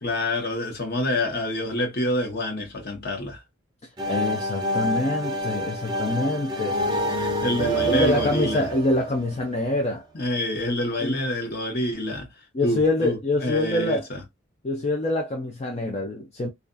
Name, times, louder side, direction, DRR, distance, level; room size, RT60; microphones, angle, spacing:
voice 1, 0.0-3.4 7.2-8.7 10.1-12.3 12.6-14.2, left 1 dB, 50° left, 0.9 m, -27 dB
sound 1, 4.0-9.7, right 1 dB, 20° right, 0.5 m, -27 dB
voice 2, 4.1-6.8 7.8-10.0 11.0-11.2 12.5-14.0 14.6-16.5, left 2 dB, 30° left, 0.4 m, -25 dB
2.5 x 2.2 x 2.4 m
head